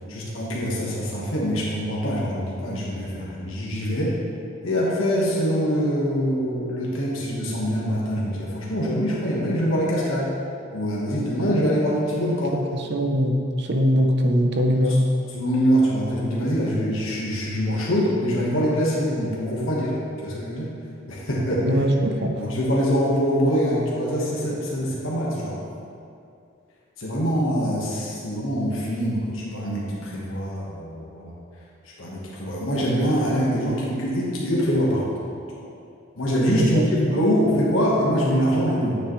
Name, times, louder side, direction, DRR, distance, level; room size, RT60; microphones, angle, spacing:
voice 1, 0.1-4.1 4.6-10.3 10.7-12.5 15.3-20.7 21.1-21.6 22.4-25.6 27.0-31.4 32.0-35.2 36.2-38.9, equal, 85° left, -5 dB, 1.4 m, -24 dB
voice 2, 12.5-15.0 21.6-22.4 36.6-36.9, equal, 55° right, 3 dB, 0.7 m, -22 dB
9.4 x 6.8 x 3.2 m, 2.6 s
head